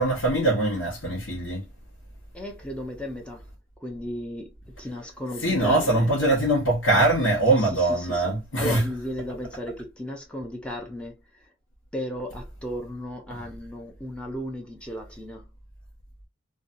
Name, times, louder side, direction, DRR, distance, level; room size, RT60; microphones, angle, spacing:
voice 1, 0.0-1.6 5.4-8.8 13.3-13.4, right 2 dB, 80° left, 1.0 m, -22 dB
voice 2, 2.3-3.5 3.8-6.1 7.5-8.3 8.6-11.5 11.9-15.5, equal, 5° left, 0.5 m, -35 dB
2.6 x 2.3 x 2.5 m
head